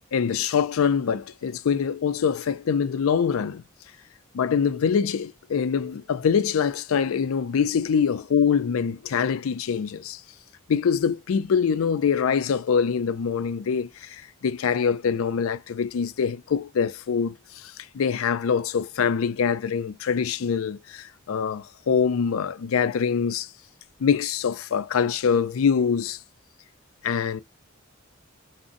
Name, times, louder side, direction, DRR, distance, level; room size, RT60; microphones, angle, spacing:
voice 1, 0.1-3.6 4.3-10.2 10.7-23.5 24.0-26.2 27.0-27.4, left 6 dB, 75° left, 0.4 m, -24 dB
3.7 x 2.1 x 2.5 m
head